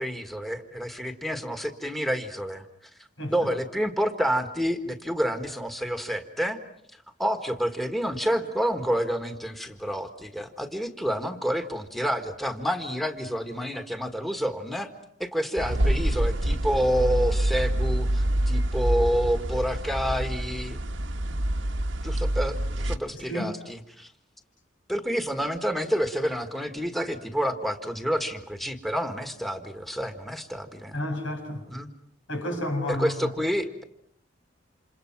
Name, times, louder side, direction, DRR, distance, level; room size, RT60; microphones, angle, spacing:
voice 1, 0.0-2.6 3.3-6.6 7.2-14.9 15.2-20.8 22.0-24.1 24.9-31.0 31.7-31.9 32.9-33.8, equal, ahead, 7 dB, 1.6 m, -28 dB
sound 1, 15.6-23.0, right 1 dB, 80° right, 1.3 m, -26 dB
voice 2, 23.2-23.5 30.9-31.6 32.3-33.3, left 1 dB, 90° left, 4 dB, 6.5 m, -31 dB
29.0 x 27.5 x 6.0 m, 0.72 s
head